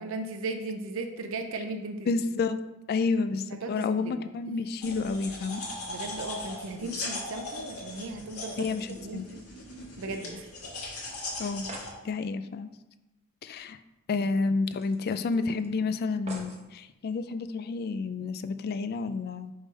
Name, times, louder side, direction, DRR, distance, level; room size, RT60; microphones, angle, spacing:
voice 1, 0.0-2.1 3.6-4.6 5.9-8.7 9.0-9.4 10.0-10.5, right 2 dB, 65° right, 5 dB, 0.5 m, -37 dB
voice 2, 2.1-2.6 2.9-5.6 8.6-9.3 11.4-11.7 12.0-12.7 13.4-13.8 14.1-19.5, left 4 dB, 45° left, 11 dB, 0.3 m, -30 dB
sound 1, 4.8-11.9, left 2 dB, 80° left, 1.6 m, -39 dB
sound 2, 7.9-10.5 10.8-10.9 11.2-11.3 11.5-12.0 13.5-13.6 13.9-14.0 14.7-15.7 16.3-16.7 17.4-17.5, right 2 dB, 30° right, 0.9 m, -47 dB
5.4 x 3.4 x 5.1 m, 1.0 s
head